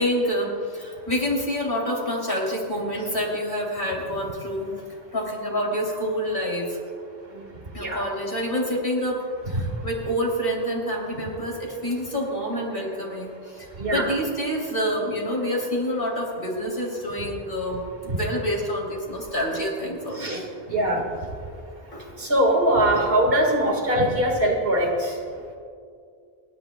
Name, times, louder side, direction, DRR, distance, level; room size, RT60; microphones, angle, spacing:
voice 1, 0.0-4.7 5.1-6.8 7.7-9.2 9.5-20.4 21.9-22.0 22.9-23.0, equal, 60° left, -2 dB, 3.3 m, -27 dB
voice 2, 13.8-14.1 18.1-18.2 20.1-20.4 20.7-21.1 22.2-25.2, right 1 dB, 65° right, 0 dB, 2.1 m, -22 dB
30.0 x 10.5 x 2.3 m, 2.3 s
omnidirectional pair, 1.1 m